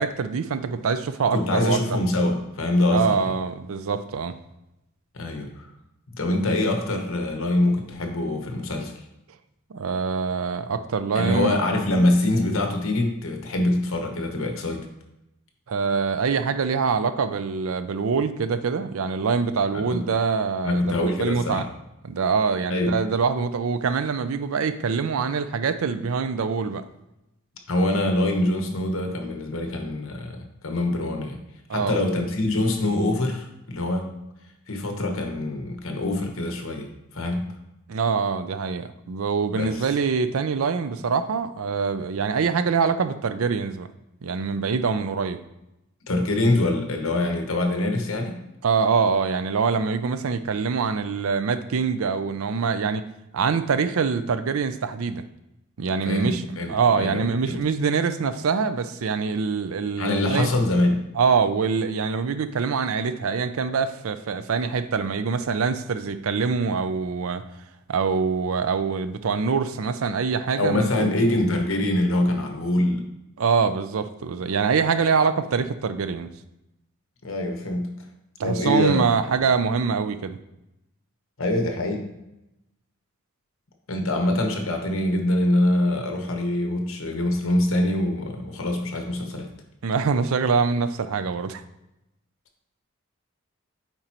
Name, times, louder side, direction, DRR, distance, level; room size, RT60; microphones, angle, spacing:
voice 1, 0.0-1.8 2.9-4.3 9.7-11.6 15.7-21.6 22.0-26.8 31.7-32.0 37.9-43.9 44.2-45.4 48.6-53.0 53.3-55.2 55.8-56.4 56.7-60.5 61.2-67.4 67.9-71.1 73.4-76.3 78.4-80.4 89.8-91.6, right 5 dB, 75° right, 11 dB, 0.5 m, -24 dB
voice 2, 1.3-3.3 5.1-5.7 6.2-8.9 11.1-14.8 19.7-20.0 20.6-21.6 22.7-22.9 27.7-30.4 30.6-31.4 31.7-34.1 34.7-37.4 39.5-39.8 46.1-48.4 56.0-57.6 60.0-61.0 70.6-73.1 77.2-77.9 78.4-79.0 79.3-79.4 81.4-82.0 83.9-89.5, left 1 dB, 65° left, 3 dB, 1.1 m, -24 dB
8.8 x 4.3 x 3.0 m, 0.90 s
head